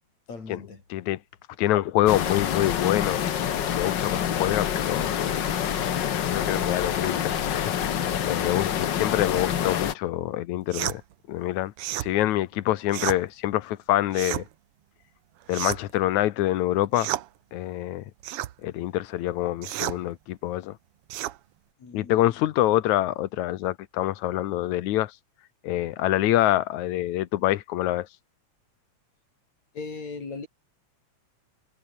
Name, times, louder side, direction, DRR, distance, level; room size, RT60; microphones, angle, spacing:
voice 1, 0.3-0.8 21.8-22.4 29.7-30.5, left 4 dB, 70° left, 6.5 m, -38 dB
voice 2, 1.6-3.3 3.6-5.1 6.2-7.8 8.2-11.0 11.3-14.4 15.5-17.1 17.5-18.0 18.6-20.8 21.9-25.1 25.6-28.1, left 14 dB, 90° left, 2.4 m, -26 dB
sound 1, 2.1-9.9, left 9 dB, 50° left, 1.4 m, -27 dB
sound 2, 10.7-11.0 11.8-12.1 12.9-13.2 14.1-14.5 15.5-16.0 16.9-17.3 18.2-18.5 19.6-20.0 21.1-21.4, right 14 dB, 70° right, 1.5 m, -31 dB
omnidirectional pair, 3.3 m